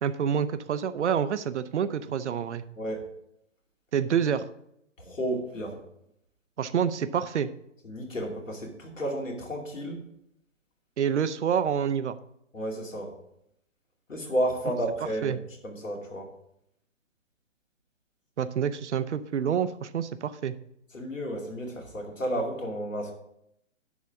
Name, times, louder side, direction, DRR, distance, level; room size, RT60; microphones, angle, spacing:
voice 1, 0.0-2.6 3.9-4.5 6.6-7.5 11.0-12.2 15.2-15.4 18.4-20.6, right 8 dB, 65° right, 12 dB, 0.8 m, -27 dB
voice 2, 2.8-3.1 5.0-5.8 7.8-10.0 12.5-13.1 14.1-16.3 20.9-23.1, right 1 dB, 85° left, 1 dB, 2.7 m, -32 dB
11.0 x 4.2 x 6.1 m, 0.76 s
figure-of-eight pair, 140°, 38 cm